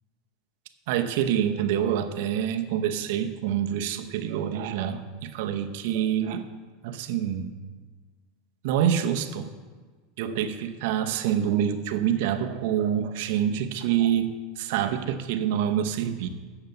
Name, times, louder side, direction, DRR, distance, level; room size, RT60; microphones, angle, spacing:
voice 1, 0.9-6.5 6.8-7.5 8.6-9.5 10.2-16.3, right 9 dB, 70° right, 7 dB, 0.9 m, -26 dB
9.0 x 7.0 x 6.7 m, 1.4 s
supercardioid pair, 120°, 0 cm